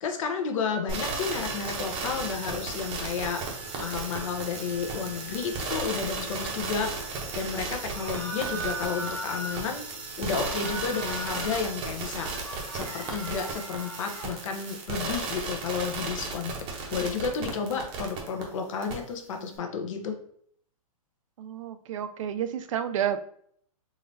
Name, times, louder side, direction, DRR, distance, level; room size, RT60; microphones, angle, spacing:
voice 1, 0.0-3.4 3.8-6.9 7.3-9.8 10.2-12.3 12.7-16.5 16.9-20.2, left 6 dB, 55° left, 5 dB, 0.8 m, -31 dB
sound 1, 0.9-18.4 18.8-18.9, right 3 dB, 25° right, 0.7 m, -35 dB
sound 2, 7.9-9.6 10.3-11.6 12.0-14.3, equal, 10° left, 0.7 m, -38 dB
voice 2, 21.4-23.2, right 9 dB, 60° right, 11 dB, 0.4 m, -30 dB
3.8 x 3.1 x 2.6 m, 0.63 s
hypercardioid pair, 145°, 19 cm